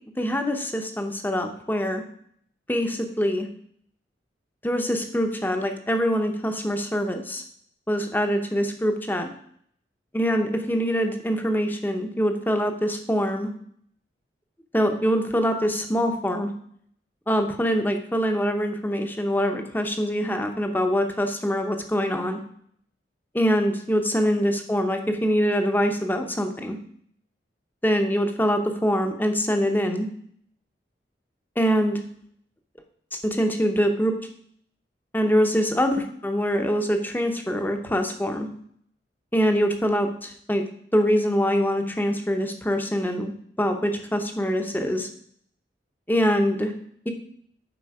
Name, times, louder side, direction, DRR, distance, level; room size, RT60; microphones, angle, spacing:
voice 1, 0.2-2.0 2.7-3.5 4.6-7.4 7.9-9.3 10.1-13.5 14.7-16.5 17.3-22.4 23.3-26.8 27.8-30.1 31.6-32.0 33.2-34.1 35.1-38.5 39.3-40.6 40.9-43.3 43.6-45.1 46.1-46.7, equal, 10° left, 5 dB, 0.8 m, -24 dB
7.9 x 5.1 x 4.8 m, 0.64 s
head